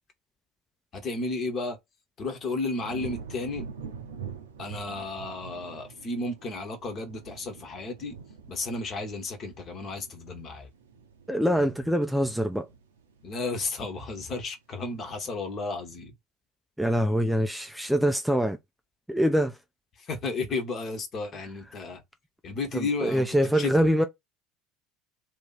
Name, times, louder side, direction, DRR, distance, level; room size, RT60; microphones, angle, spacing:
voice 1, 0.9-1.8 2.2-3.6 4.6-8.2 8.5-10.7 13.2-16.1 20.0-22.0 22.4-23.7, left 3 dB, 40° left, 1.2 m, -33 dB
sound 1, 2.8-14.1 14.5-14.9, right 6 dB, 75° right, 0.6 m, -45 dB
voice 2, 11.3-12.7 16.8-18.6 19.1-19.6 22.7-24.1, equal, ahead, 0.4 m, -24 dB
2.9 x 2.8 x 3.9 m
figure-of-eight pair, 65°, 0 cm